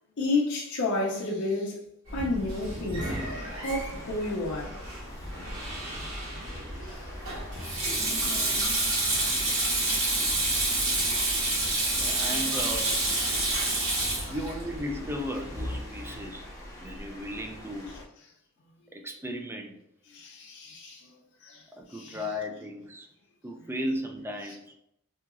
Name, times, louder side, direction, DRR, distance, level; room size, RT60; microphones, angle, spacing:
voice 1, 0.2-4.8 6.8-7.1 20.1-22.3 23.5-23.7, left 2 dB, 55° left, 0.5 m, -33 dB
Sink (filling or washing), 2.1-15.8, right 2 dB, 80° right, 1.3 m, -29 dB
sound 1, 3.1-18.0, left 1 dB, 15° left, 0.7 m, -44 dB
voice 2, 12.0-13.0 14.3-16.5 16.8-17.9 18.9-19.7 21.7-23.1 23.4-24.7, equal, 10° right, 0.4 m, -35 dB
2.8 x 2.8 x 2.4 m
head